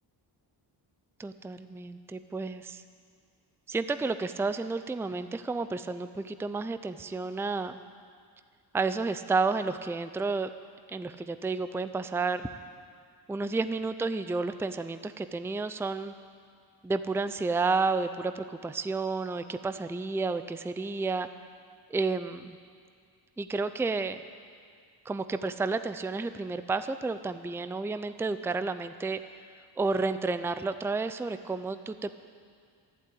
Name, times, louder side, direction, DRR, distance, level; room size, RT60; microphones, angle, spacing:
voice 1, 1.2-2.8 3.7-7.8 8.7-10.5 10.9-12.5 13.3-16.1 16.8-21.3 21.9-22.6 23.4-24.2 25.1-29.2 29.8-32.1, right 3 dB, 5° right, 11 dB, 0.4 m, -31 dB
12.0 x 11.5 x 8.5 m, 2.1 s
cardioid pair, 100°, 42 cm